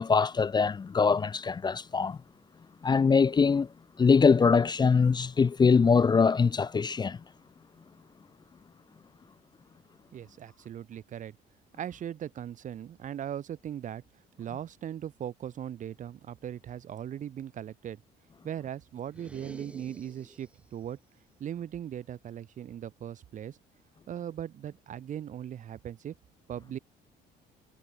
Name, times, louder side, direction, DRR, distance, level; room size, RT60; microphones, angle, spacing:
voice 1, 0.0-2.2 2.8-3.7 4.0-7.2, left 5 dB, 25° left, 0.8 m, -23 dB
voice 2, 10.1-11.4 11.8-14.0 14.4-18.0 18.4-21.0 21.4-23.6 24.1-26.1 26.5-26.8, right 10 dB, 50° right, 1.0 m, -39 dB
sound 1, 19.1-20.7, right 1 dB, 5° right, 2.5 m, -50 dB
cardioid pair, 110°, 17 cm